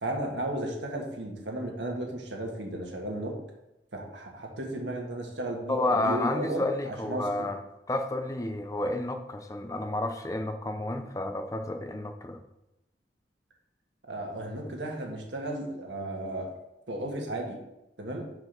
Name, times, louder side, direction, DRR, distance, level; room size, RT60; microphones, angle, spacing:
voice 1, 0.0-3.3 3.9-7.5 14.1-16.5 16.9-17.6 18.0-18.3, right 1 dB, 90° right, 1 dB, 1.5 m, -34 dB
voice 2, 5.7-7.6 7.9-12.4, left 2 dB, 20° left, 6 dB, 0.5 m, -30 dB
6.1 x 4.9 x 5.1 m, 0.91 s
head